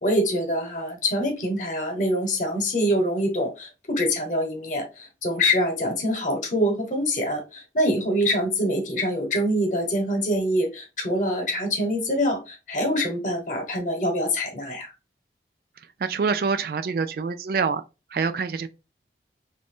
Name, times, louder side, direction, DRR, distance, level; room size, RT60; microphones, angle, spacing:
voice 1, 0.0-14.9, equal, 45° left, 1.1 m, -25 dB
voice 2, 16.0-17.8 18.1-18.7, right 5 dB, 55° right, 0.3 m, -25 dB
3.0 x 2.6 x 3.5 m
head